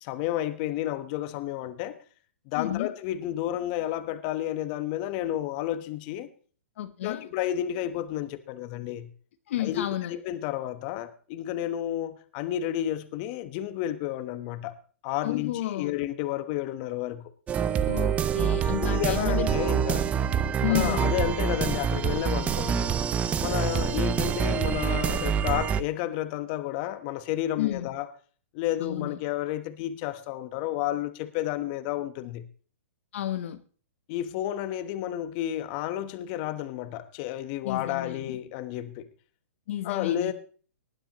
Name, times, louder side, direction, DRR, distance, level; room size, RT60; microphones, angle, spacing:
voice 1, 0.0-2.0 2.5-6.3 7.0-9.1 9.6-14.7 15.0-17.3 18.8-20.1 20.7-23.1 23.4-28.1 28.5-32.5 34.1-39.1 39.8-40.3, left 12 dB, 40° left, 1.1 m, -31 dB
voice 2, 2.6-2.9 6.8-7.3 9.5-10.2 15.2-16.0 17.9-19.7 20.6-21.1 27.6-27.9 28.8-29.2 33.1-33.6 37.6-38.4 39.7-40.3, left 12 dB, 60° left, 0.9 m, -31 dB
sound 1, 17.5-25.8, right 8 dB, 15° right, 0.5 m, -26 dB
19.5 x 10.5 x 3.0 m
hypercardioid pair, 140°, 8 cm